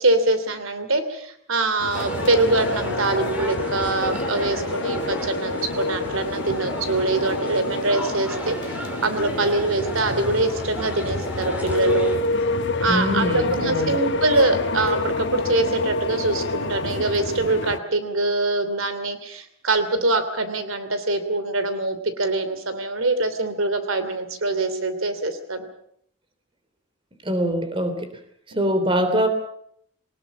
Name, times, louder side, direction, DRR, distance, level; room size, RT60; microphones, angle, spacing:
voice 1, 0.0-8.7 9.0-12.1 12.8-25.7, right 2 dB, 80° right, 11 dB, 2.9 m, -24 dB
sound 1, 1.8-17.8, left 2 dB, 55° left, 1.3 m, -28 dB
sound 2, 1.9-12.2, equal, 5° right, 3.9 m, -33 dB
voice 2, 12.8-14.0 27.2-28.1 28.5-29.3, equal, 25° right, 8 dB, 3.2 m, -23 dB
23.0 x 19.5 x 7.2 m, 0.68 s
head